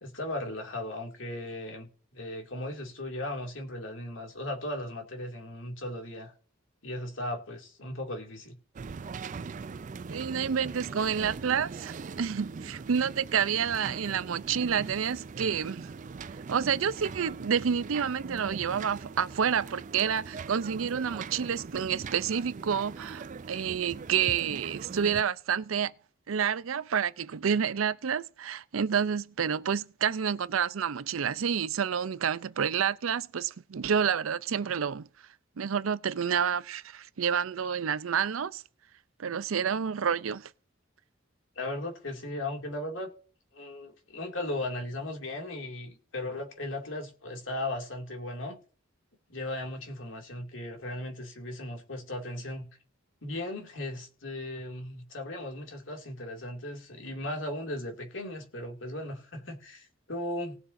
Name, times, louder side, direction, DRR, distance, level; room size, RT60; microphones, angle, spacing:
voice 1, 0.0-6.3 6.8-8.6 41.6-43.1 43.5-48.6 49.3-52.7 53.2-60.6, left 1 dB, 70° left, 2.4 m, -37 dB
sound 1, 8.8-25.2, right 5 dB, 40° right, 0.4 m, -41 dB
voice 2, 10.1-15.9 16.5-25.9 26.3-35.1 35.6-38.6 39.2-40.5, right 7 dB, 90° right, 0.5 m, -29 dB
19.5 x 6.9 x 2.6 m
head